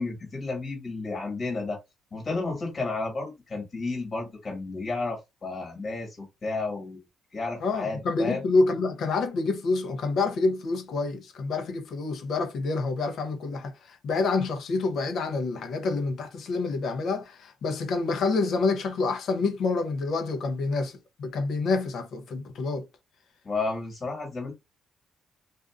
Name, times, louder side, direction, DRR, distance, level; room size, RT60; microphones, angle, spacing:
voice 1, 0.0-1.8 2.1-7.0 7.3-8.4 23.4-24.5, left 3 dB, 40° left, 1.6 m, -32 dB
voice 2, 7.6-22.9, left 3 dB, 65° left, 0.7 m, -27 dB
2.5 x 2.4 x 2.4 m
cardioid pair, 90°, 0 cm